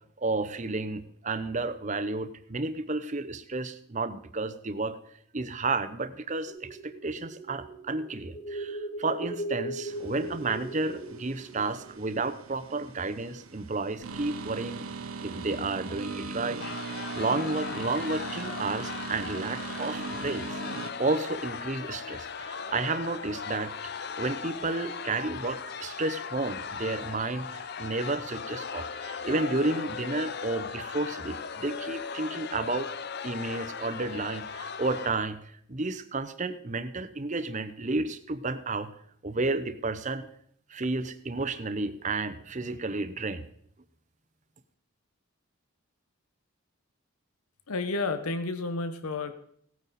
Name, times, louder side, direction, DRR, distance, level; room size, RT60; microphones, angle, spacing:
voice 1, 0.2-5.0 5.3-14.9 15.2-16.6 17.1-23.7 24.0-32.9 33.2-35.4 35.7-38.9 39.2-40.3 40.7-43.5, right 3 dB, 35° right, 11 dB, 0.7 m, -32 dB
sound 1, 6.5-13.0, right 2 dB, 25° left, 1.6 m, -39 dB
sound 2, 9.9-20.9, right 4 dB, 75° right, 0.8 m, -39 dB
sound 3, 16.6-35.1, left 6 dB, 50° left, 0.5 m, -38 dB
voice 2, 47.7-49.3, left 3 dB, 85° left, 10 dB, 0.9 m, -31 dB
17.0 x 9.2 x 4.1 m, 0.66 s
head